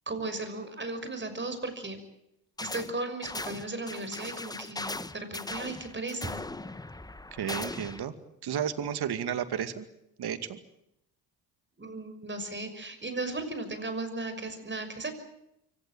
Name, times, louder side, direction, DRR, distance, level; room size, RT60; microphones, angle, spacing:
voice 1, 0.1-2.0 2.6-6.4 11.8-15.1, right 2 dB, 25° right, 9 dB, 6.2 m, -36 dB
sound 1, 2.6-2.9 3.2-8.0, left 2 dB, 10° left, 1.1 m, -38 dB
voice 2, 7.3-8.1 8.4-9.8 10.2-10.6, right 9 dB, 50° right, 11 dB, 2.3 m, -32 dB
24.0 x 18.0 x 9.2 m, 0.81 s
hypercardioid pair, 60°, 48 cm